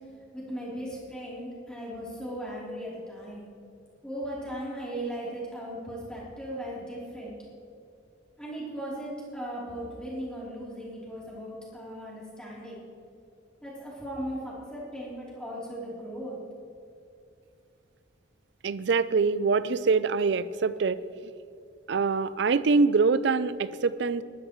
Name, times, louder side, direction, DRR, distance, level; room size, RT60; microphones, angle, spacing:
voice 1, 0.3-3.5 4.0-7.3 8.4-12.8 13.6-16.4, equal, 5° left, -7 dB, 3.3 m, -37 dB
voice 2, 18.6-21.0 21.9-24.2, right 4 dB, 60° right, 16 dB, 0.4 m, -24 dB
20.0 x 13.0 x 3.1 m, 2.5 s
head